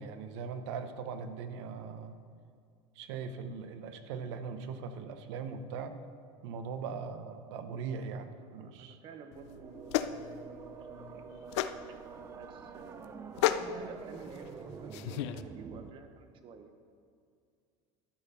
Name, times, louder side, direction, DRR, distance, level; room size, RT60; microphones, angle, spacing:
voice 1, 0.0-2.1 3.0-6.0 6.4-9.0, right 5 dB, 85° right, 9 dB, 0.9 m, -40 dB
voice 2, 8.4-11.6 12.2-16.7, right 5 dB, 35° right, 7 dB, 0.9 m, -51 dB
sound 1, 9.3-15.4, left 12 dB, 85° left, 0.5 m, -35 dB
sound 2, 9.4-15.9, right 6 dB, 20° right, 0.4 m, -47 dB
11.5 x 5.9 x 5.7 m, 2.3 s
cardioid pair, 155°, 14 cm